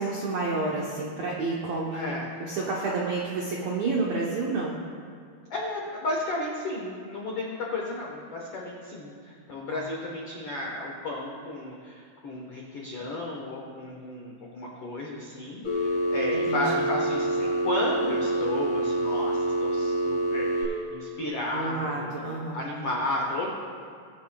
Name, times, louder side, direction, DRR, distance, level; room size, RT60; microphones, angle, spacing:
voice 1, 0.0-2.1 2.4-4.8 9.7-9.8 16.5-16.6 21.5-22.6, right 3 dB, 85° right, -3 dB, 1.5 m, -29 dB
voice 2, 1.9-2.3 2.6-3.1 5.5-23.5, left 1 dB, 85° left, -3 dB, 1.2 m, -33 dB
Telephone, 15.6-20.6, right 1 dB, 40° left, 3.5 m, -26 dB
21.5 x 8.8 x 2.3 m, 2.3 s
omnidirectional pair, 4.6 m